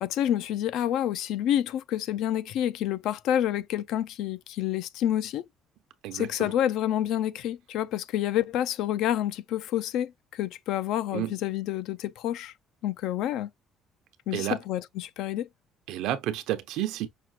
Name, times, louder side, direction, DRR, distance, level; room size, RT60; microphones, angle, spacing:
voice 1, 0.0-5.4 6.1-12.5 12.8-13.5 14.3-15.5, left 11 dB, 65° left, 0.4 m, -28 dB
voice 2, 6.0-6.5 11.1-11.3 14.3-14.6 15.9-17.1, right 13 dB, 75° right, 0.8 m, -30 dB
6.0 x 2.3 x 2.8 m
cardioid pair, 175°, 0 cm